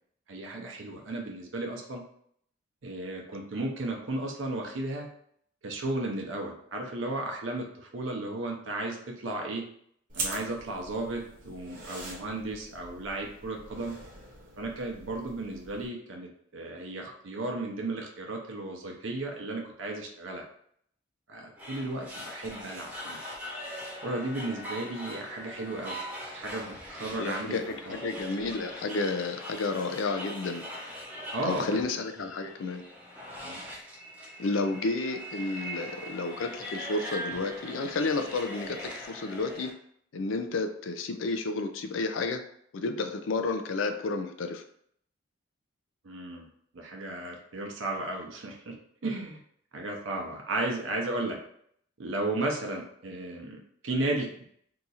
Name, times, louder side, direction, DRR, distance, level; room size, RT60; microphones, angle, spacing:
voice 1, 0.3-2.0 2.8-5.1 5.6-9.6 10.1-13.9 14.6-20.4 21.3-23.2 24.0-26.0 26.3-27.6 27.9-28.0 31.3-31.7 33.4-33.6 46.0-46.5 46.7-48.8 49.0-49.4 49.7-51.4 52.0-54.5, right 2 dB, 80° right, 1 dB, 0.6 m, -34 dB
sound 1, 10.1-15.9, right 2 dB, 45° right, 0.8 m, -42 dB
sound 2, 21.6-39.7, equal, 5° right, 0.7 m, -41 dB
Bowed string instrument, 22.1-26.6, left 6 dB, 45° left, 0.6 m, -52 dB
voice 2, 27.2-30.6 31.4-32.8 34.4-39.7 40.1-42.4 42.7-44.6, left 3 dB, 85° left, 7 dB, 0.4 m, -31 dB
2.9 x 2.4 x 4.0 m, 0.66 s
head